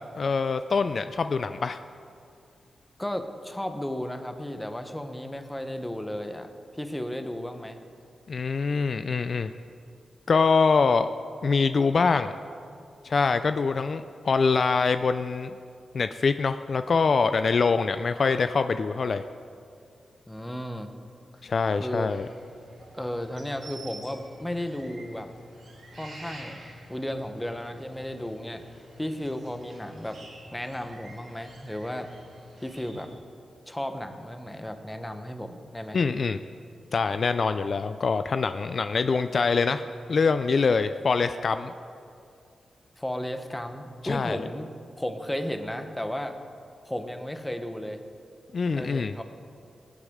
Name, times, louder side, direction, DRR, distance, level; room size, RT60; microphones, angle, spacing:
voice 1, 0.1-1.8 8.3-9.5 10.3-11.1 11.4-12.3 13.0-15.5 15.9-19.2 21.4-22.3 35.9-36.4 36.9-39.8 40.1-41.7 44.0-44.4 48.5-49.1, left 4 dB, 55° left, 10 dB, 0.3 m, -24 dB
voice 2, 3.0-7.8 20.3-20.9 21.8-22.1 22.9-25.3 26.0-26.6 26.9-30.2 30.5-32.1 32.6-33.1 33.7-36.0 43.0-44.7 45.0-46.4 46.8-48.0 48.7-49.2, left 1 dB, 10° left, 7 dB, 0.9 m, -34 dB
sound 1, 22.1-33.1, right 1 dB, 85° right, 3.0 m, -48 dB
20.0 x 8.2 x 3.6 m, 2.4 s
wide cardioid pair, 95°, 0 cm